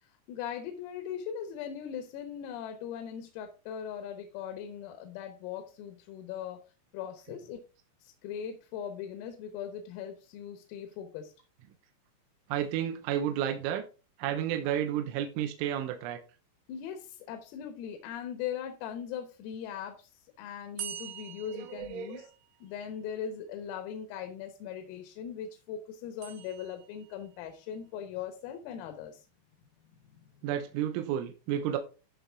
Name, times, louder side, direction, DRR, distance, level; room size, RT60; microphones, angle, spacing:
voice 1, 0.0-6.6 6.9-7.6 8.0-11.3 16.7-22.3 22.6-29.3 30.0-30.3, left 8 dB, 90° left, 6 dB, 3.9 m, -40 dB
voice 2, 12.5-13.8 14.2-16.2 21.5-22.3 30.4-31.8, right 10 dB, 80° right, 5 dB, 3.2 m, -31 dB
sound 1, 20.8-22.8 26.2-27.3, right 10 dB, 65° right, 2.9 m, -44 dB
14.0 x 5.8 x 3.6 m, 0.33 s
omnidirectional pair, 5.9 m